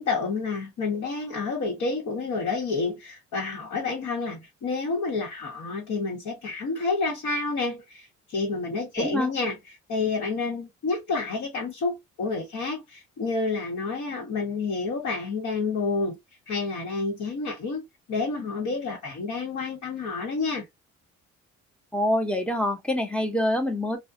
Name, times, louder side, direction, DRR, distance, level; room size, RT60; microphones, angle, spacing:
voice 1, 0.0-9.6 9.9-16.2 16.5-20.6, left 4 dB, 70° left, 1.0 m, -29 dB
voice 2, 9.0-9.3 21.9-24.0, left 1 dB, 5° left, 0.6 m, -25 dB
2.3 x 2.1 x 2.5 m
cardioid pair, 90°, 30 cm